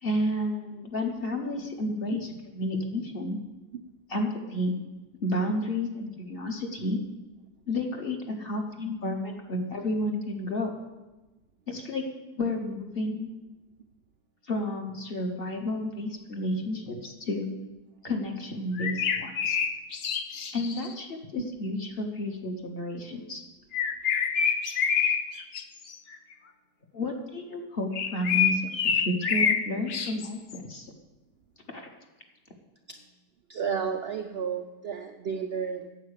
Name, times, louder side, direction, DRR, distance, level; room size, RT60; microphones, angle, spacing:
voice 1, 0.0-3.4 4.1-4.8 5.2-7.0 7.7-10.7 11.7-12.0 12.3-13.3 14.4-17.5 18.0-19.6 20.5-23.4 26.9-30.9 31.7-31.9, left 1 dB, 40° left, 3 dB, 1.1 m, -31 dB
sound 1, 18.8-20.9 23.7-25.6 25.9-26.2 27.9-29.6 29.9-30.6, left 7 dB, 60° left, 0.6 m, -26 dB
voice 2, 33.5-35.9, right 6 dB, 80° right, 5 dB, 0.5 m, -32 dB
9.4 x 7.4 x 6.5 m, 1.1 s
omnidirectional pair, 1.8 m